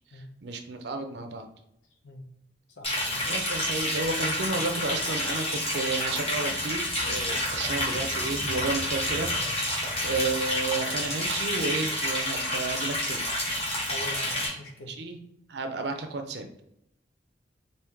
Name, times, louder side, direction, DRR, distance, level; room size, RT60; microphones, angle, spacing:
voice 1, 0.1-1.5 3.2-9.3 9.6-13.2 14.9-15.2 15.5-16.5, right 3 dB, 60° right, 6 dB, 0.5 m, -32 dB
voice 2, 2.8-3.2 7.2-7.5 10.1-10.3 13.9-15.0, left 1 dB, 75° left, 2 dB, 0.7 m, -43 dB
Liquid, 2.8-14.5, left 1 dB, 30° left, 1.5 m, -29 dB
4.5 x 2.7 x 3.5 m, 0.78 s
head